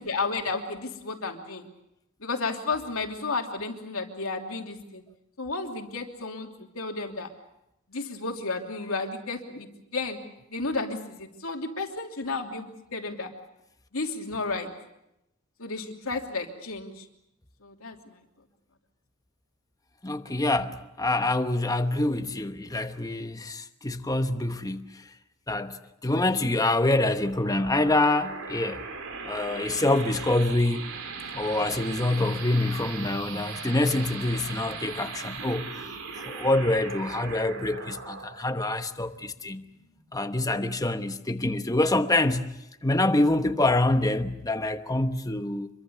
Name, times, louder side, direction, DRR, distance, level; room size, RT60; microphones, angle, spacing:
voice 1, 0.0-1.6 2.2-5.0 5.4-6.5 6.7-7.3 7.9-10.2 10.5-13.3 13.9-14.7 15.6-17.0 17.6-18.2, left 3 dB, 90° left, 3.0 m, -32 dB
voice 2, 20.0-24.9 25.5-25.8 26.0-28.8 29.2-30.9 31.3-35.8 36.2-39.6 40.1-42.5 42.8-45.7, left 2 dB, 15° left, 1.1 m, -26 dB
sound 1, 27.0-40.1, right 4 dB, 90° right, 3.2 m, -39 dB
26.0 x 23.5 x 7.0 m
head